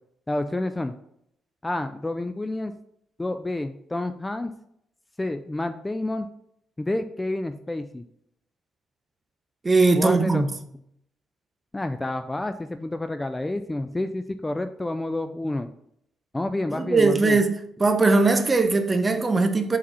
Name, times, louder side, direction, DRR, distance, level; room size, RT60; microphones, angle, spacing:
voice 1, 0.3-0.9 1.6-2.7 3.2-4.5 5.2-6.3 6.8-8.0 10.0-10.4 11.7-15.7 16.3-17.4, left 2 dB, 15° left, 0.4 m, -29 dB
voice 2, 9.6-10.5 16.7-17.5 17.8-19.8, right 3 dB, 25° right, 0.8 m, -20 dB
5.1 x 4.1 x 5.6 m
cardioid pair, 90°, 0 cm